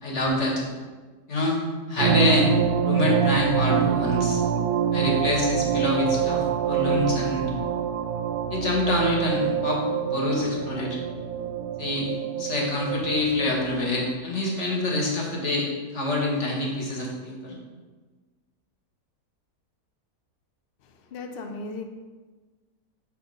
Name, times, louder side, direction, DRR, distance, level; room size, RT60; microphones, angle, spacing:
voice 1, 0.0-0.6 1.3-1.6 1.9-2.5 2.8-4.4 4.9-7.5 8.5-11.0 11.8-12.1 12.4-17.6, left 2 dB, 45° left, -2 dB, 1.7 m, -26 dB
sound 1, 2.0-14.1, right 8 dB, 70° right, 1.0 m, -26 dB
voice 2, 20.8-21.8, left 3 dB, 70° left, 5 dB, 0.5 m, -37 dB
6.5 x 4.4 x 5.2 m, 1.3 s
omnidirectional pair, 1.7 m